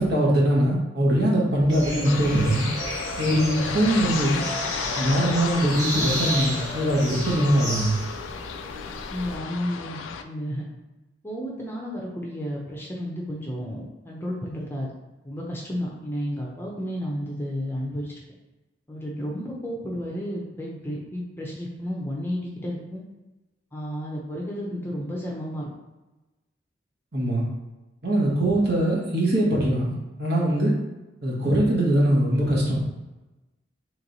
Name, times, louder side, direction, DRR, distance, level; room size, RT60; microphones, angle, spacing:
voice 1, 0.0-2.7 3.2-4.4 4.9-8.0 27.1-27.5 28.0-30.7 31.2-32.8, right 1 dB, 55° right, -5 dB, 1.2 m, -22 dB
sound 1, 1.7-9.4, equal, 20° right, 1.4 m, -32 dB
sound 2, 2.0-10.2, left 6 dB, 85° left, 0.3 m, -33 dB
voice 2, 9.1-10.7 11.2-14.9 15.2-18.2 18.9-23.0 23.7-25.7, equal, 10° left, -3 dB, 0.6 m, -32 dB
3.2 x 3.2 x 3.9 m, 1.1 s
head